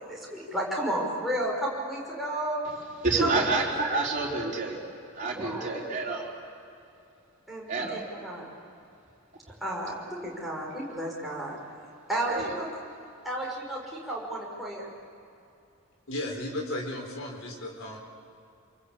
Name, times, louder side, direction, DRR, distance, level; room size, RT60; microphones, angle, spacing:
voice 1, 0.0-2.6 5.3-6.0 7.5-8.5 9.6-11.6 12.1-12.7 13.2-14.9, right 1 dB, ahead, -5 dB, 5.8 m, -33 dB
voice 2, 3.0-4.8 5.2-6.3 7.7-8.1 12.3-12.5, right 3 dB, 35° right, -4 dB, 4.6 m, -28 dB
voice 3, 16.1-18.0, left 1 dB, 70° left, 1 dB, 4.0 m, -34 dB
27.0 x 24.0 x 8.6 m, 2.6 s
head